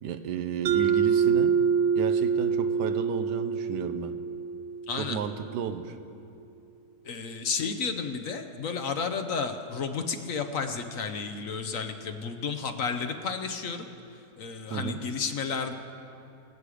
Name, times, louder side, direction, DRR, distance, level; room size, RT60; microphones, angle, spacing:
voice 1, 0.0-1.6 1.9-4.1 5.0-6.0 14.7-15.0, right 7 dB, 90° right, 10 dB, 1.4 m, -33 dB
Mallet percussion, 0.7-5.2, right 6 dB, 70° right, 0.6 m, -26 dB
voice 2, 4.9-5.2 7.0-13.9 14.4-15.7, left 5 dB, 60° left, 7 dB, 1.1 m, -32 dB
24.0 x 8.3 x 5.0 m, 2.6 s
omnidirectional pair, 1.7 m